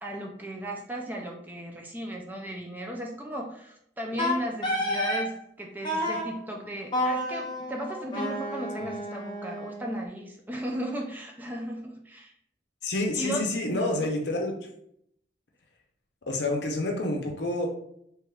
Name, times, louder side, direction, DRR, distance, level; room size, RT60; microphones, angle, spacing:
voice 1, 0.0-12.3 13.1-13.5, equal, 10° right, 0 dB, 0.3 m, -36 dB
Wind instrument woodwind instrument, 4.2-5.3 5.8-6.3 6.9-9.9, left 1 dB, 25° left, 0.8 m, -30 dB
voice 2, 12.8-14.6 16.2-17.7, left 2 dB, 65° left, 2 dB, 0.6 m, -28 dB
3.4 x 2.9 x 2.3 m, 0.71 s
head